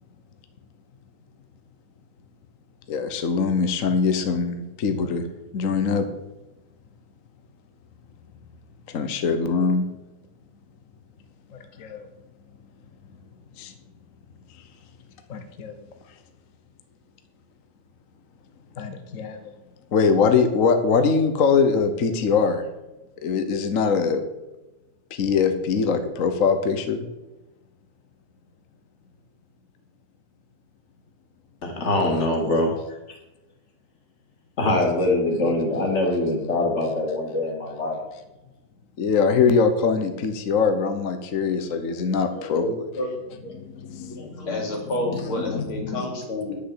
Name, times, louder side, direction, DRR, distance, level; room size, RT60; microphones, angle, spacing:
voice 1, 2.9-5.3 5.5-6.1 8.9-9.9 11.5-12.1 13.6-13.7 15.3-15.8 18.8-19.5 19.9-22.6 23.2-24.2 25.1-27.0 39.0-42.7 43.5-44.5 45.5-46.0, left 5 dB, 50° left, 8 dB, 1.1 m, -22 dB
voice 2, 31.6-32.7 34.6-38.0, left 2 dB, 35° left, 1 dB, 2.5 m, -23 dB
voice 3, 42.3-43.5 44.0-46.6, left 1 dB, 90° left, 1 dB, 3.8 m, -30 dB
10.5 x 6.6 x 7.9 m, 1.0 s
omnidirectional pair, 2.3 m